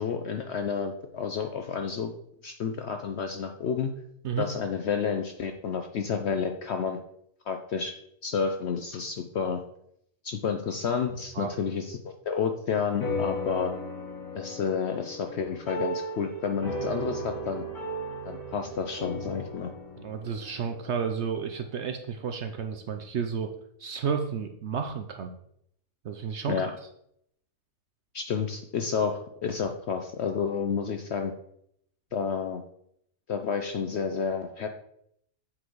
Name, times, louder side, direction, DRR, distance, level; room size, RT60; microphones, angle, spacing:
voice 1, 0.0-2.1 2.4-3.9 4.4-7.0 7.5-7.9 8.2-9.6 10.2-13.7 14.3-17.6 18.2-19.7 26.5-26.8 28.1-31.3 32.1-32.6 33.3-34.7, left 6 dB, 65° left, 6 dB, 0.7 m, -30 dB
sound 1, 13.0-21.7, equal, 80° left, 3.3 m, -36 dB
voice 2, 20.0-23.5 23.8-25.3 26.0-26.5, right 6 dB, 60° right, 6 dB, 0.7 m, -31 dB
7.6 x 4.2 x 4.6 m, 0.73 s
omnidirectional pair, 1.6 m